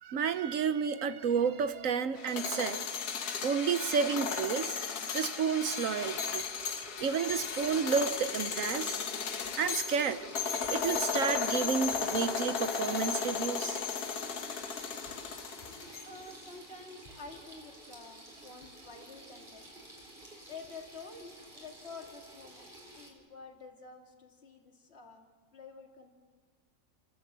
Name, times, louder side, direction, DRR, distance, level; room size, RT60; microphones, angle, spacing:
voice 1, 0.0-2.8 3.4-4.9 5.1-6.5 7.0-8.9 9.5-13.8, right 6 dB, 60° right, 12 dB, 1.1 m, -31 dB
sound 1, 2.2-16.3, left 6 dB, 80° left, 1.8 m, -35 dB
Water tap faucet / Sink (filling or washing), 6.0-23.1, right 1 dB, 30° right, 4.4 m, -50 dB
voice 2, 15.6-19.7 20.5-25.3 25.5-26.1, left 4 dB, 40° left, 3 dB, 2.4 m, -49 dB
29.0 x 14.0 x 8.0 m, 1.5 s
omnidirectional pair, 1.6 m